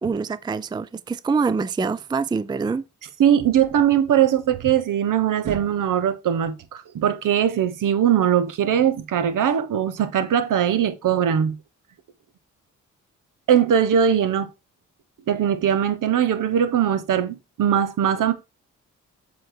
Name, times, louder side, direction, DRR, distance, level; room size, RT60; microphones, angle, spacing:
voice 1, 0.0-2.8, right 4 dB, 15° right, 0.4 m, -25 dB
voice 2, 3.2-11.6 13.5-14.5 15.3-18.3, right 9 dB, 70° right, 1.0 m, -20 dB
7.6 x 3.1 x 4.3 m
supercardioid pair, 55°, 33 cm